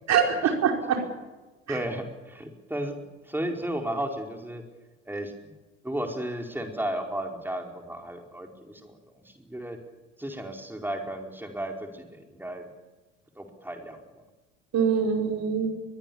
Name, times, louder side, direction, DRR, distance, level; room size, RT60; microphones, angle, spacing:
voice 1, 0.1-1.1 1.7-1.8 14.7-15.7, right 7 dB, 45° right, 3 dB, 5.1 m, -24 dB
voice 2, 1.7-3.0 3.2-4.6 5.1-5.3 5.8-9.8 10.2-12.7 13.4-14.0, right 1 dB, 5° right, 3 dB, 4.9 m, -34 dB
23.0 x 22.0 x 7.3 m, 1.2 s
figure-of-eight pair, 65°, 38 cm